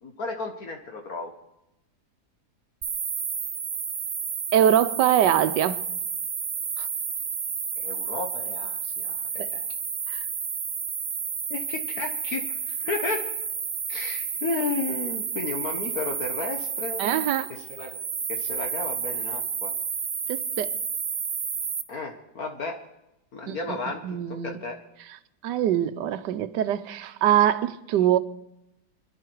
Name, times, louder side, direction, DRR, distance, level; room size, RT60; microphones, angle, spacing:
voice 1, 0.0-1.3 7.8-9.6 11.5-13.2 13.9-17.0 17.7-18.0 18.3-19.7 21.9-22.8 23.3-24.0 24.4-24.8, left 3 dB, 60° left, 1.7 m, -33 dB
sound 1, 2.8-21.8, right 6 dB, 55° right, 0.4 m, -31 dB
voice 2, 4.5-5.8 6.8-6.9 9.4-9.5 10.1-10.2 17.0-17.5 17.8-17.9 20.3-20.7 23.5-23.8 24.0-24.6 25.4-28.2, right 10 dB, 85° right, 1.4 m, -23 dB
27.0 x 11.0 x 4.6 m
omnidirectional pair, 1.8 m